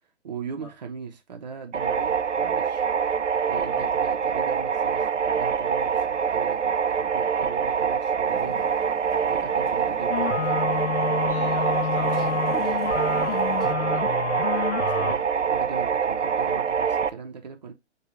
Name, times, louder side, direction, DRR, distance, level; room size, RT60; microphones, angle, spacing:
voice 1, 0.2-2.9 3.5-8.7 9.2-10.7 13.7-14.1 14.7-17.7, right 6 dB, 35° right, 0.7 m, -39 dB
sound 1, 1.7-17.1, right 7 dB, 90° right, 0.5 m, -25 dB
Motorcycle, 8.3-13.7, equal, ahead, 1.5 m, -45 dB
sound 2, 10.1-15.1, left 9 dB, 70° left, 0.5 m, -29 dB
voice 2, 11.3-12.4 12.7-14.2 14.8-15.0, left 2 dB, 30° left, 1.0 m, -42 dB
6.2 x 2.3 x 3.0 m
figure-of-eight pair, 135°, 35 cm